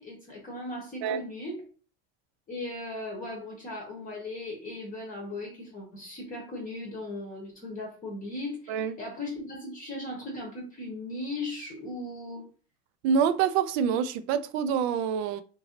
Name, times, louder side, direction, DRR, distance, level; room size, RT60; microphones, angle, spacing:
voice 1, 0.0-1.6 2.5-12.5, left 2 dB, 20° left, 0.9 m, -37 dB
voice 2, 13.0-15.4, right 7 dB, 55° right, 0.5 m, -26 dB
2.9 x 2.7 x 2.8 m
supercardioid pair, 120°, 38 cm